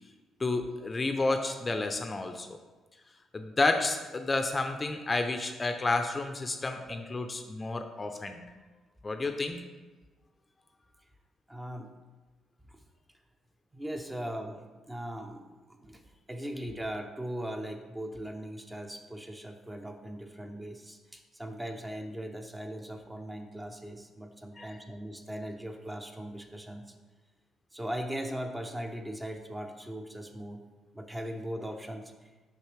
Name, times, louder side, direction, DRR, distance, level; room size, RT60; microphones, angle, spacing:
voice 1, 0.4-2.5 3.3-8.4 9.0-9.6 24.6-24.8, left 3 dB, 25° left, 6 dB, 0.5 m, -30 dB
voice 2, 11.5-11.9 12.7-12.8 13.7-16.0 16.3-26.9 27.7-30.6 30.9-32.1, right 1 dB, 15° right, 4 dB, 0.7 m, -39 dB
6.2 x 5.2 x 3.3 m, 1.3 s
cardioid pair, 90°, 0 cm